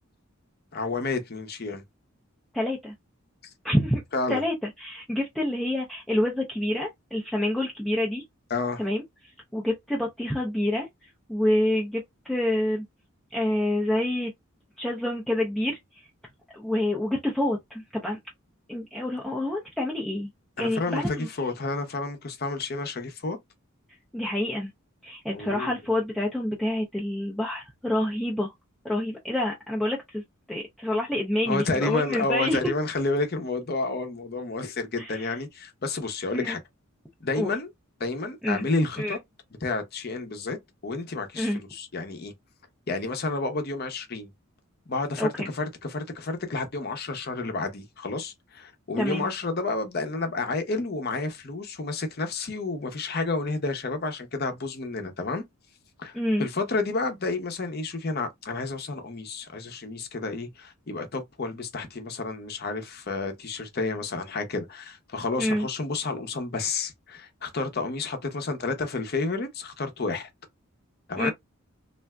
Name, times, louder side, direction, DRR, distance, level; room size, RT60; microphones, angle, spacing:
voice 1, 0.7-1.8 4.1-4.4 8.5-8.8 20.6-23.4 25.3-25.7 31.5-36.6 37.2-37.7 38.0-39.2 39.6-40.6 40.8-42.3 42.9-44.3 44.9-55.4 56.0-70.3 71.1-71.3, left 3 dB, 45° left, 0.7 m, -30 dB
voice 2, 2.5-2.9 3.6-4.0 4.3-8.2 8.8-9.0 9.5-12.8 13.3-14.3 14.8-16.0 16.5-18.2 18.7-20.3 20.6-21.3 24.1-24.7 25.0-28.5 28.8-30.2 30.5-32.6 35.0-35.4 36.3-36.6 37.4-37.5 38.4-38.7 39.0-39.2 41.4-41.6 45.2-45.5 49.0-49.3 56.1-56.5 65.4-65.7 71.2-71.3, left 1 dB, ahead, 0.5 m, -27 dB
3.3 x 2.5 x 2.2 m
head